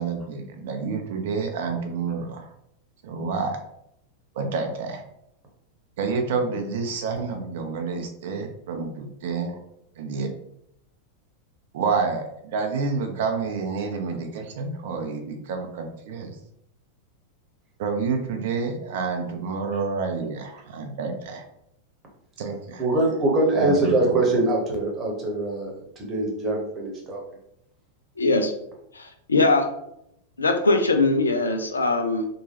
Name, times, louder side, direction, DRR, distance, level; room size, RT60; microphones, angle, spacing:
voice 1, 0.0-2.5 3.0-3.6 4.4-5.0 6.0-9.6 10.0-10.3 11.7-16.4 17.8-21.4 22.4-22.8 23.5-23.9, right 4 dB, 55° right, 4 dB, 0.4 m, -28 dB
voice 2, 22.8-27.2, right 2 dB, 25° right, -1 dB, 0.9 m, -23 dB
voice 3, 28.2-28.5 28.9-29.7 30.4-32.3, left 3 dB, 75° left, 6 dB, 0.3 m, -21 dB
2.8 x 2.2 x 2.8 m, 0.77 s
figure-of-eight pair, 90°, 0 cm